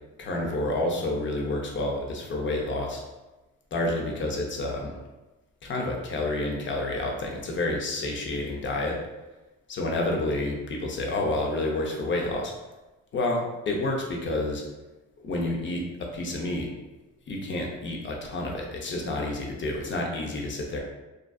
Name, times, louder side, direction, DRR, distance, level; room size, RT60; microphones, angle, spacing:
voice 1, 0.2-3.0 3.7-5.0 5.6-9.0 9.7-12.5 13.1-14.6 15.2-16.7 17.3-20.8, left 2 dB, 40° left, 0 dB, 0.6 m, -29 dB
2.4 x 2.3 x 2.3 m, 1.1 s
cardioid pair, 90°, 30 cm